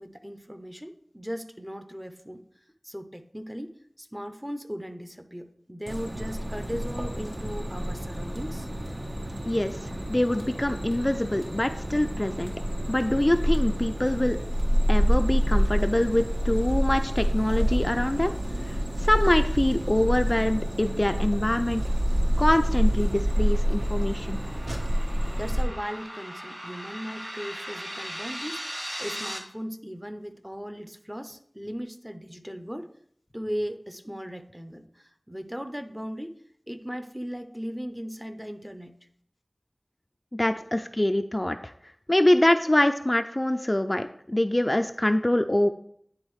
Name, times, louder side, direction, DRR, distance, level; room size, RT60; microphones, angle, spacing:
voice 1, 0.0-2.4 2.8-8.7 25.4-32.9 33.3-36.4 36.7-39.0, equal, 10° right, 7 dB, 0.6 m, -37 dB
sound 1, 5.9-25.6, equal, 65° right, 1.0 m, -27 dB
voice 2, 9.5-9.8 10.1-12.5 12.9-14.4 14.9-18.3 18.6-21.8 22.4-24.4 40.3-41.7 42.1-45.7, left 1 dB, 35° left, 7 dB, 0.3 m, -24 dB
sound 2, 21.7-29.4, equal, 30° right, 1.3 m, -39 dB
9.7 x 3.8 x 3.1 m, 0.66 s
wide cardioid pair, 45°, 0 cm